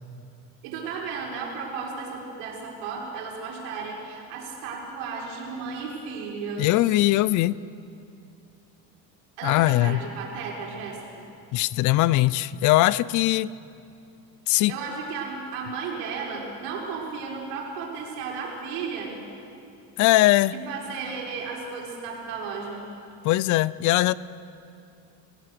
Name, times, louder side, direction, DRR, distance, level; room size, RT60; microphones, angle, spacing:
voice 1, 0.6-7.1 9.4-11.2 14.7-19.2 20.5-22.8, right 5 dB, 85° right, -2 dB, 6.0 m, -34 dB
voice 2, 6.6-7.6 9.4-10.0 11.5-13.5 14.5-14.7 20.0-20.5 23.2-24.1, left 17 dB, 55° left, 20 dB, 0.5 m, -20 dB
28.0 x 17.0 x 6.9 m, 2.6 s
cardioid pair, 150°, 37 cm